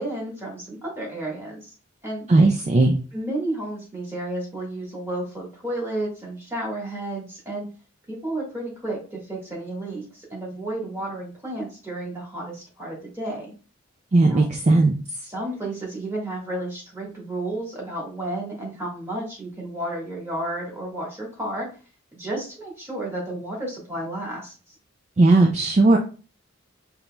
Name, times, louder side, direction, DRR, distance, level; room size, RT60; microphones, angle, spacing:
voice 1, 0.0-1.7 2.0-2.3 3.1-7.7 8.1-13.5 14.3-14.5 15.3-21.7 22.1-24.5, right 1 dB, 10° right, -3 dB, 1.6 m, -32 dB
voice 2, 2.3-3.0 14.1-14.9 25.2-26.0, right 2 dB, 35° right, 3 dB, 0.4 m, -17 dB
5.2 x 3.0 x 2.2 m, 0.36 s
head